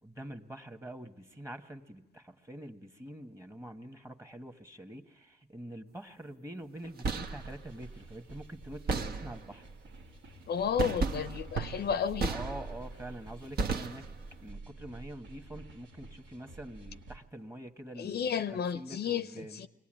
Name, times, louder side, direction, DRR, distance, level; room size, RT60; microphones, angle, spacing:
voice 1, 0.0-9.7 12.3-14.0 14.4-19.7, right 1 dB, 15° right, 1.4 m, -45 dB
sound 1, 6.8-7.5 8.9-9.6 10.8-12.9 13.6-14.3, right 4 dB, 55° right, 1.1 m, -34 dB
sound 2, 7.2-17.2, right 2 dB, 75° right, 2.0 m, -49 dB
voice 2, 10.5-12.3 18.0-19.3 19.6-19.7, left 7 dB, 55° left, 0.7 m, -32 dB
23.5 x 17.5 x 8.9 m
cardioid pair, 90°, 20 cm